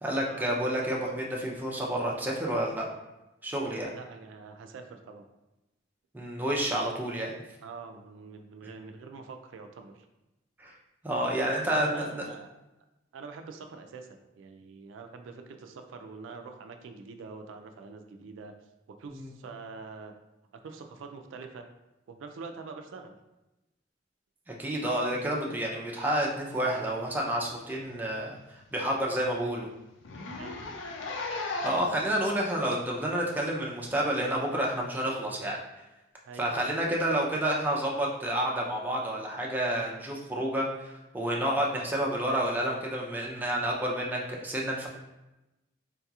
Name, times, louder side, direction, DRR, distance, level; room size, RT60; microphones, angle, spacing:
voice 1, 0.0-2.9 3.4-3.9 6.1-7.3 10.6-10.7 11.0-12.3 19.1-19.3 24.5-28.4 28.7-29.7 31.6-35.6 36.4-44.9, right 1 dB, 10° right, -3 dB, 0.4 m, -29 dB
voice 2, 3.9-5.2 7.6-10.1 11.3-12.5 13.1-18.5 18.9-20.1 20.6-21.6 22.1-23.2 30.4-30.6 36.2-36.9 41.8-42.0, right 4 dB, 80° right, 5 dB, 0.3 m, -45 dB
Zipper (clothing), 27.5-27.6 27.9-28.0 28.4-28.5 28.9-29.0 29.2-29.4 30.0-32.0 32.7-32.8 33.8-33.9, left 3 dB, 70° left, 0.4 m, -36 dB
3.9 x 2.8 x 2.3 m, 0.98 s
head